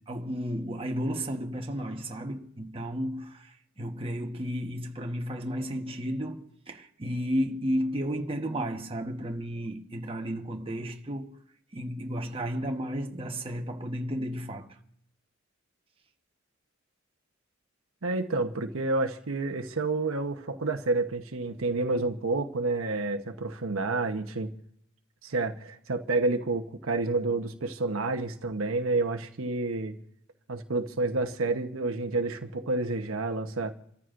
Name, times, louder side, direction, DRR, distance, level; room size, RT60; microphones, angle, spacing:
voice 1, 0.1-11.4 11.7-14.8, equal, 25° right, 1.2 m, -33 dB
voice 2, 18.0-24.5 25.2-29.9 30.5-33.7, right 3 dB, 90° right, 1.0 m, -29 dB
28.0 x 14.0 x 2.6 m
head